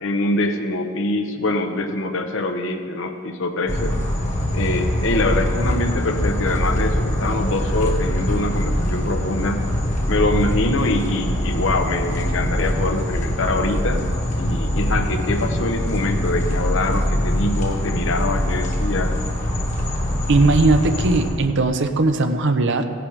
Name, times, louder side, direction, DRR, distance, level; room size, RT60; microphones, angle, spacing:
voice 1, 0.0-4.0 4.5-9.6 10.1-14.0 14.4-19.1, left 2 dB, 65° left, 6 dB, 0.9 m, -24 dB
sound 1, 3.7-21.3, equal, 35° left, 1.4 m, -23 dB
voice 2, 20.3-22.9, right 3 dB, 60° right, 8 dB, 0.7 m, -18 dB
16.5 x 11.0 x 3.3 m, 2.5 s
head